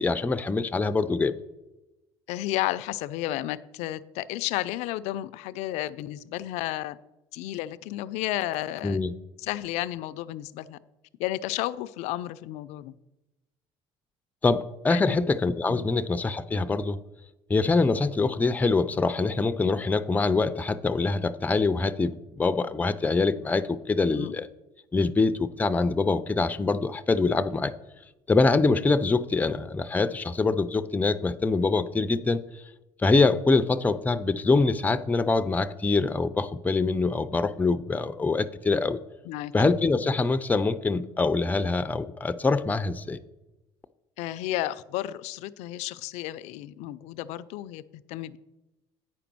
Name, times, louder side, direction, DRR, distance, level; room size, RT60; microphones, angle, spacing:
voice 1, 0.0-1.4 8.8-9.1 14.4-17.0 17.5-24.5 24.9-27.7 28.3-32.4 33.0-39.0 39.5-43.2, left 3 dB, 15° left, 12 dB, 0.5 m, -24 dB
voice 2, 2.3-7.0 7.3-9.0 9.4-10.8 11.2-12.9 14.9-15.2 15.7-15.9 24.1-24.3 39.2-39.5 44.2-48.4, left 15 dB, 80° left, 14 dB, 0.4 m, -32 dB
9.0 x 5.1 x 6.0 m, 1.0 s
supercardioid pair, 95°, 11 cm